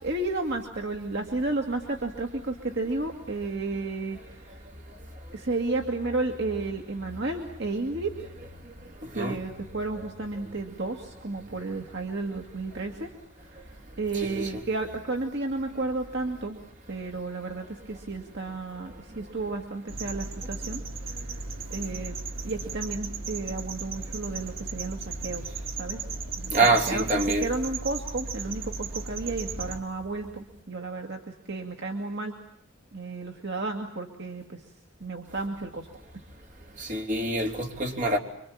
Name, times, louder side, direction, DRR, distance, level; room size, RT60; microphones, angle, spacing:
voice 1, 0.0-4.6 5.3-8.3 9.1-13.1 13.5-13.7 14.0-16.6 16.9-20.8 21.1-21.4 21.7-22.2 22.4-25.5 25.8-26.0 26.4-26.6 26.9-32.3 32.9-34.6 35.0-35.9, right 3 dB, 55° right, 3 dB, 2.2 m, -32 dB
voice 2, 14.1-14.6 26.5-27.5 36.8-38.2, right 2 dB, 40° right, 3 dB, 3.5 m, -25 dB
sound 1, 19.9-29.8, right 4 dB, 75° right, 2.2 m, -36 dB
26.0 x 25.0 x 8.7 m, 0.69 s
head